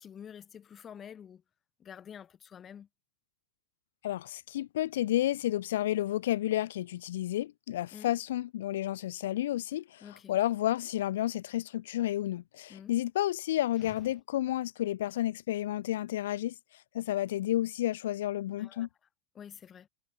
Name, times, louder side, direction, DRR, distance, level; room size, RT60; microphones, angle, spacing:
voice 1, 0.0-1.4 1.8-2.9 7.9-8.1 10.0-10.4 12.7-12.9 13.8-13.9 18.6-18.9 19.4-19.9, left 8 dB, 25° left, 3.5 m, -48 dB
voice 2, 4.0-16.5 16.9-18.9, left 13 dB, 55° left, 0.4 m, -31 dB
figure-of-eight pair, 90°, 0 cm